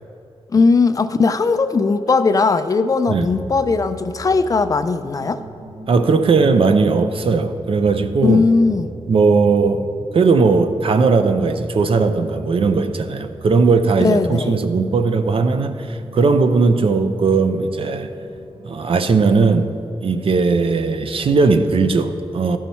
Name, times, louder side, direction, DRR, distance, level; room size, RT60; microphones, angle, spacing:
voice 1, 0.5-5.4 8.2-8.9 14.0-14.6, left 4 dB, 35° left, 10 dB, 0.4 m, -18 dB
sound 1, 3.0-22.0, right 2 dB, 75° right, 1.0 m, -39 dB
voice 2, 5.9-8.4 9.1-9.8 10.1-18.1 18.6-19.7 20.0-22.6, right 4 dB, 55° right, 9 dB, 0.5 m, -17 dB
13.5 x 5.6 x 4.2 m, 2.6 s
wide cardioid pair, 165°, 11 cm